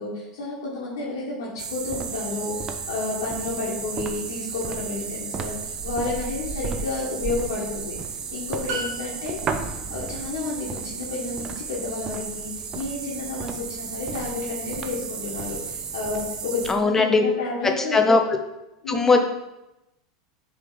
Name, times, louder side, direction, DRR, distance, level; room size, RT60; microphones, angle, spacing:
voice 1, 0.0-2.5 2.9-8.0 8.3-18.1 18.8-19.2, left 3 dB, 65° left, -7 dB, 1.6 m, -31 dB
sound 1, 1.6-16.7, right 5 dB, 30° right, 0.6 m, -33 dB
sound 2, 8.7-9.8, right 1 dB, 55° right, 1.8 m, -33 dB
voice 2, 16.7-17.2 17.9-18.2 18.9-19.2, left 3 dB, 15° left, 5 dB, 0.8 m, -18 dB
7.4 x 3.6 x 3.9 m, 0.93 s
figure-of-eight pair, 85°, 2 cm